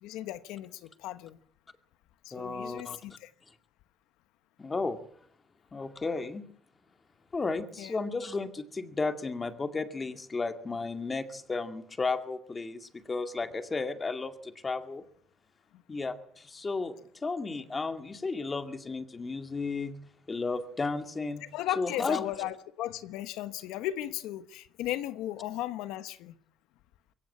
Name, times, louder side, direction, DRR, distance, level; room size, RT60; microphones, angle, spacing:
voice 1, 0.0-1.4 2.2-3.3 7.8-8.0 15.9-16.0 21.4-26.3, left 13 dB, 85° left, 1.1 m, -36 dB
voice 2, 2.3-3.0 4.6-5.0 5.7-6.4 7.3-15.0 15.9-16.9 17.2-19.9 20.3-21.4 21.8-22.2, left 3 dB, 25° left, 2.2 m, -33 dB
22.5 x 17.0 x 8.6 m
cardioid pair, 115°, 0 cm